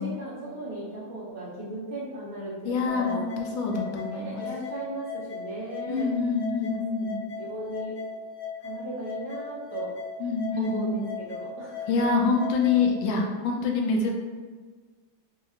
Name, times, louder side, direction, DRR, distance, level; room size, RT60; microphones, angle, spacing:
voice 1, 0.0-3.2 4.1-6.1 6.6-6.8 7.4-8.0 8.6-9.9 10.6-11.9, right 1 dB, 55° right, -7 dB, 1.3 m, -37 dB
voice 2, 2.6-4.5 5.9-7.2 10.2-11.0 11.9-14.1, left 4 dB, 80° left, 1 dB, 1.3 m, -26 dB
sound 1, 2.9-12.9, left 5 dB, 65° left, 0.9 m, -38 dB
3.8 x 2.8 x 2.5 m, 1.5 s
omnidirectional pair, 2.1 m